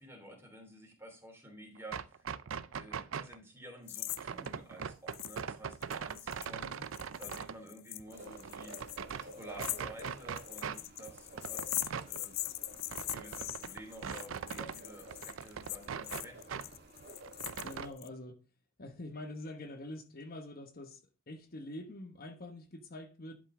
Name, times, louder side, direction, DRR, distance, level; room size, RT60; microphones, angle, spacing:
voice 1, 0.0-2.3 2.7-6.9 7.2-12.5 13.1-16.8, right 1 dB, 10° right, 3.0 m, -51 dB
sound 1, 1.8-3.4 4.1-7.6 8.0-9.3 9.6-10.8 11.1-14.8 15.1-16.7 17.0-17.9, right 7 dB, 85° right, 0.5 m, -41 dB
sound 2, 3.9-4.2 4.4-4.5 5.1-5.4 5.7-18.1, left 17 dB, 80° left, 0.5 m, -41 dB
voice 2, 6.5-6.9 17.6-18.4 18.8-23.3, left 1 dB, 50° left, 1.1 m, -45 dB
sound 3, 8.1-17.9, right 1 dB, 55° right, 1.6 m, -53 dB
11.0 x 5.4 x 3.7 m
head